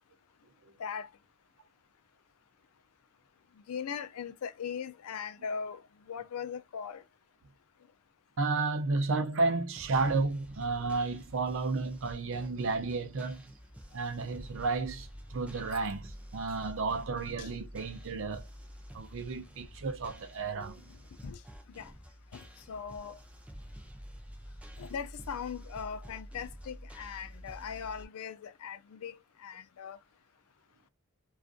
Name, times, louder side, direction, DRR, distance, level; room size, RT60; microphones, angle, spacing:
voice 1, 3.7-5.8 6.1-7.0 17.4-17.5 21.2-21.4 21.8-21.9 22.3-23.2 24.8-30.0, left 7 dB, 80° left, 0.4 m, -39 dB
voice 2, 8.4-13.4 13.9-18.4 18.9-20.8, right 3 dB, 60° right, 0.5 m, -32 dB
sound 1, 9.8-28.1, equal, 5° right, 0.4 m, -49 dB
2.5 x 2.4 x 2.4 m
head